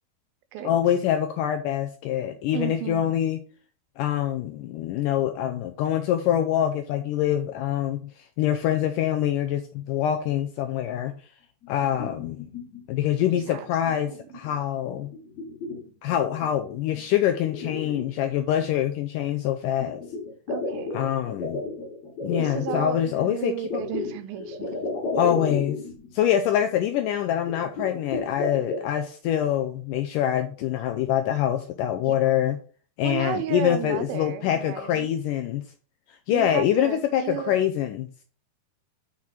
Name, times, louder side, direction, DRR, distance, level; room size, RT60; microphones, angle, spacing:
voice 1, 0.6-3.4 4.0-11.2 11.7-12.5 12.9-15.1 16.0-20.0 20.9-21.6 22.2-23.8 25.2-25.8 26.1-32.6 33.0-35.6 36.1-38.1, left 11 dB, 90° left, 1.9 m, -25 dB
voice 2, 2.5-3.2 13.5-14.2 20.5-21.0 22.4-24.7 32.0-32.2 33.0-35.1 36.3-37.6, right 10 dB, 85° right, 2.4 m, -33 dB
sound 1, 11.6-12.8 13.2-13.6 14.1-14.5 14.9-16.5 16.9-17.0 17.4-18.6 19.8-22.9 23.7-26.1 26.4-26.5 26.8-26.9 27.5-28.9, left 3 dB, 50° left, 3.1 m, -33 dB
6.3 x 5.9 x 4.3 m
omnidirectional pair, 4.4 m